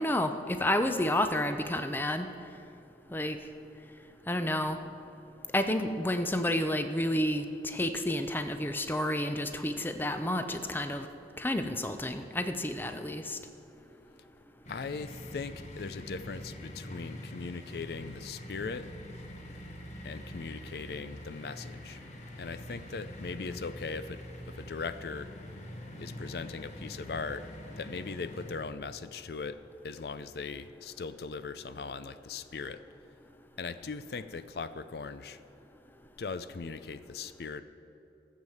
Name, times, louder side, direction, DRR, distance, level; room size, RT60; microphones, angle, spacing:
voice 1, 0.0-2.3 3.1-3.4 4.3-4.8 5.5-11.1 11.4-13.4, left 1 dB, 10° left, 8 dB, 0.5 m, -30 dB
sound 1, 14.6-28.6, left 1 dB, 40° left, 1.2 m, -45 dB
voice 2, 14.7-18.9 20.0-22.0 22.4-24.2 24.5-25.3 26.0-27.5 27.8-29.6 29.8-32.8 33.6-35.4 36.2-37.6, left 4 dB, 65° left, 13 dB, 0.4 m, -39 dB
14.0 x 7.3 x 7.7 m, 2.8 s
head